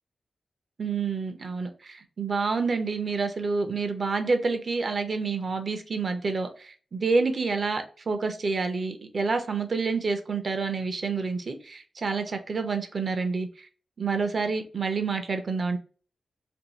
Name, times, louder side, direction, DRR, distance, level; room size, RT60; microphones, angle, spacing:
voice 1, 0.8-13.7 14.0-15.8, right 4 dB, 45° right, 7 dB, 0.5 m, -28 dB
2.6 x 2.6 x 3.0 m, 0.40 s
wide cardioid pair, 130°, 0 cm